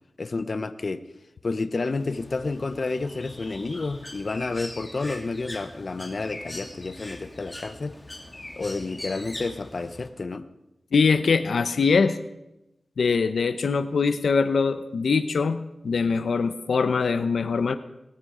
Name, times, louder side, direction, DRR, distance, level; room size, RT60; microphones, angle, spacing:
voice 1, 0.2-1.0 1.4-8.0 8.6-10.5, left 3 dB, 50° left, 11 dB, 0.9 m, -30 dB
Bird, 2.0-10.1, left 1 dB, 20° left, 2.4 m, -42 dB
voice 2, 10.9-12.2 13.0-17.8, left 5 dB, 80° left, 10 dB, 0.8 m, -23 dB
19.5 x 13.5 x 5.0 m, 0.90 s
wide cardioid pair, 85°, 0 cm